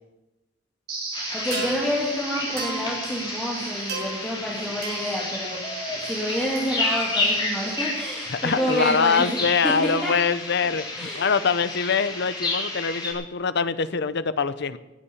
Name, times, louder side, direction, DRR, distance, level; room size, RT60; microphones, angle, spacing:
sound 1, 0.9-9.9, right 3 dB, 60° right, 6.7 m, -35 dB
sound 2, 1.1-13.1, left 2 dB, 25° left, 4.1 m, -31 dB
voice 1, 1.3-5.6 6.1-10.1 11.0-11.3, equal, 5° left, -6 dB, 2.6 m, -28 dB
voice 2, 8.3-14.8, left 5 dB, 60° left, 14 dB, 0.7 m, -24 dB
16.5 x 8.6 x 7.1 m, 1.0 s
head